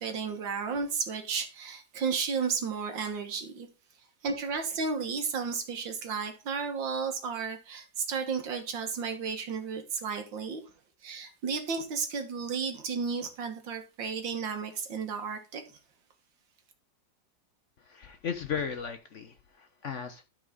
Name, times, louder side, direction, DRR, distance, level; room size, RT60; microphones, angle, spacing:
voice 1, 0.0-3.7 4.2-10.6 11.0-15.6, right 5 dB, 85° right, 2.2 m, -33 dB
voice 2, 17.8-20.3, left 7 dB, 55° left, 0.9 m, -36 dB
12.5 x 5.0 x 3.9 m
omnidirectional pair, 2.0 m